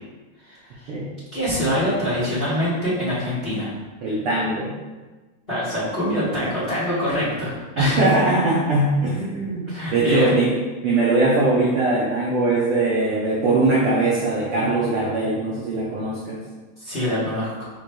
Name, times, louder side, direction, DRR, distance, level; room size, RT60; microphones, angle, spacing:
voice 1, 1.3-3.7 5.5-8.1 9.7-10.3 16.8-17.6, equal, 35° left, -10 dB, 0.9 m, -24 dB
voice 2, 4.0-4.7 7.8-10.5 10.8-16.4, right 2 dB, 85° right, -5 dB, 1.2 m, -21 dB
7.9 x 3.0 x 2.2 m, 1.2 s
omnidirectional pair, 3.3 m